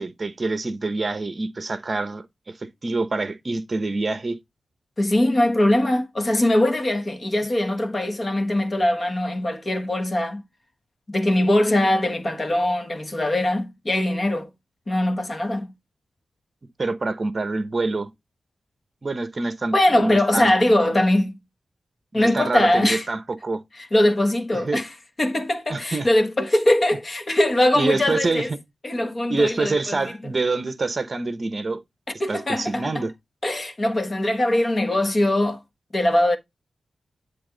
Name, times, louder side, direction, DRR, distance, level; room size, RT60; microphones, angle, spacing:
voice 1, 0.0-4.4 16.8-18.1 19.0-20.5 20.9-21.0 22.1-23.6 24.5-24.8 25.7-26.1 27.7-28.4 29.3-31.8 32.3-33.1, right 3 dB, 35° right, 0.9 m, -26 dB
voice 2, 5.0-10.4 11.1-14.5 14.9-15.7 19.7-21.3 22.1-23.0 23.8-24.9 25.2-28.5 28.8-30.0 32.2-33.0 33.4-35.6 35.9-36.4, left 1 dB, 30° left, 1.3 m, -21 dB
10.0 x 3.5 x 3.8 m
wide cardioid pair, 140°, 0 cm